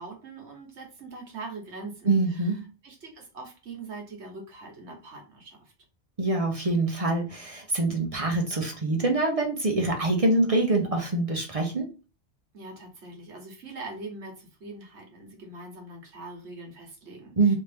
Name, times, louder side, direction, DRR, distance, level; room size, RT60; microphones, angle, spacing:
voice 1, 0.0-2.5 2.8-5.7 12.5-17.6, right 3 dB, 70° right, 1 dB, 1.4 m, -42 dB
voice 2, 2.0-2.6 6.2-11.9 17.4-17.5, right 2 dB, 40° right, 1 dB, 0.6 m, -25 dB
3.2 x 2.7 x 3.3 m, 0.33 s
omnidirectional pair, 1.2 m